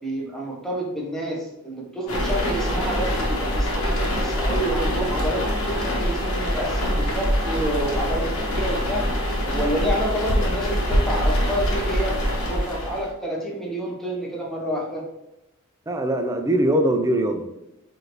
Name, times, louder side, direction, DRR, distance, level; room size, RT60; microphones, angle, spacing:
voice 1, 0.0-9.1 9.5-12.2 12.4-15.0, right 1 dB, ahead, -3 dB, 0.8 m, -29 dB
sound 1, 2.1-13.1, equal, 75° left, 1.0 m, -24 dB
voice 2, 15.9-17.5, right 1 dB, 15° right, 5 dB, 0.4 m, -21 dB
4.8 x 2.6 x 3.0 m, 0.90 s
head